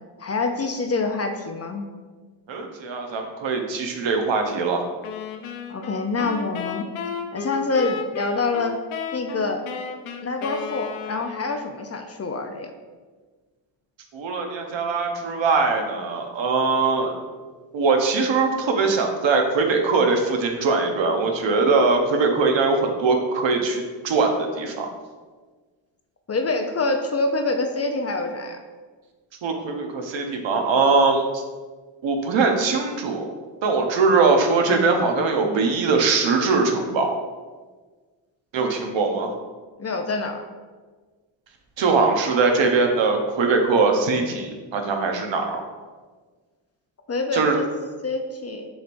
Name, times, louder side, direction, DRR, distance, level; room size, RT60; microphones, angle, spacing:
voice 1, 0.2-1.9 5.7-6.9 7.3-8.8 9.1-9.7 10.2-12.7 26.3-28.6 39.8-40.4 47.1-47.7 48.0-48.7, left 3 dB, 30° left, 5 dB, 0.5 m, -26 dB
voice 2, 2.5-4.9 14.1-17.2 17.7-24.9 29.4-31.4 32.0-33.3 33.6-37.2 38.5-39.3 41.8-45.6 47.3-47.5, right 4 dB, 65° right, 4 dB, 0.8 m, -21 dB
sound 1, 5.0-11.6, left 7 dB, 80° left, 0.6 m, -33 dB
6.2 x 3.1 x 2.5 m, 1.4 s
supercardioid pair, 50°, 48 cm